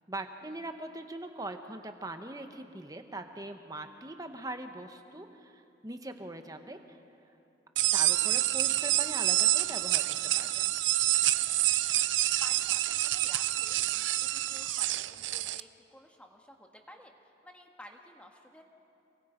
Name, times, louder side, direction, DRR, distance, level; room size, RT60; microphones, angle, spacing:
voice 1, 0.1-7.0 7.9-10.7, right 2 dB, 20° right, 6 dB, 1.1 m, -41 dB
sound 1, 7.8-15.6, right 15 dB, 85° right, 0.5 m, -27 dB
voice 2, 12.4-18.6, left 1 dB, 5° left, 2 dB, 1.6 m, -53 dB
28.0 x 22.5 x 5.2 m, 2.7 s
head